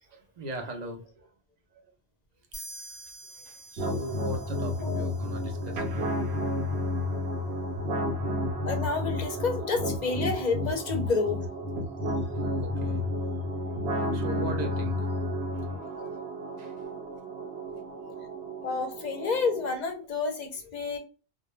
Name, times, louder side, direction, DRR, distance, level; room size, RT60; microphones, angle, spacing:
voice 1, 0.1-1.3 1.7-1.9 2.7-3.0 3.4-6.1 12.2-13.1 13.6-16.1 16.6-16.7 20.6-21.0, right 1 dB, 50° right, 0.6 m, -40 dB
sound 1, 2.5-6.1, right 1 dB, 10° left, 0.5 m, -47 dB
sound 2, 3.8-19.8, left 1 dB, 80° right, 0.9 m, -31 dB
voice 2, 8.6-11.4 18.6-21.0, left 4 dB, 55° left, 0.6 m, -29 dB
2.1 x 2.1 x 3.0 m
omnidirectional pair, 1.1 m